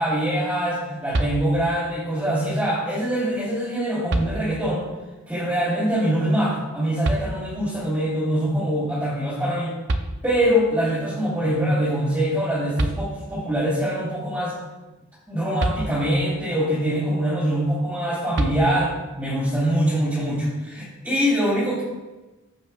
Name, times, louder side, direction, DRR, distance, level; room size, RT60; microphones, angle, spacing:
voice 1, 0.0-4.8 5.3-9.7 10.2-14.5 15.3-18.9 19.2-21.8, equal, 10° right, -12 dB, 2.7 m, -23 dB
sound 1, 1.1-1.9 3.4-3.5 4.1-4.8 7.0-7.8 9.5-9.6 9.9-10.7 12.4-12.5 12.8-13.5 15.6-16.4 18.3-19.1, right 1 dB, 55° right, 0.6 m, -28 dB
14.5 x 5.5 x 2.4 m, 1.2 s
head